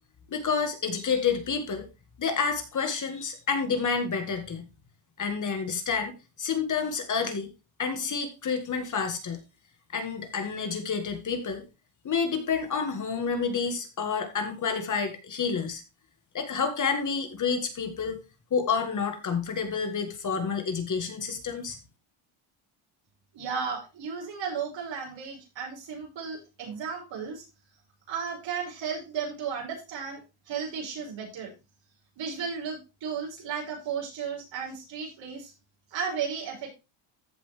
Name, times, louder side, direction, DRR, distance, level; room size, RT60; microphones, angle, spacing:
voice 1, 0.3-1.8 2.2-4.7 5.2-7.5 7.8-9.4 9.9-11.6 12.0-15.8 16.3-18.2 18.5-21.8, left 5 dB, 35° left, 6 dB, 1.9 m, -29 dB
voice 2, 23.3-27.4 28.1-30.2 30.5-31.5 32.2-35.5 35.9-36.7, right 6 dB, 60° right, -1 dB, 5.9 m, -34 dB
14.5 x 5.9 x 3.3 m, 0.27 s
cardioid pair, 150°, 50 cm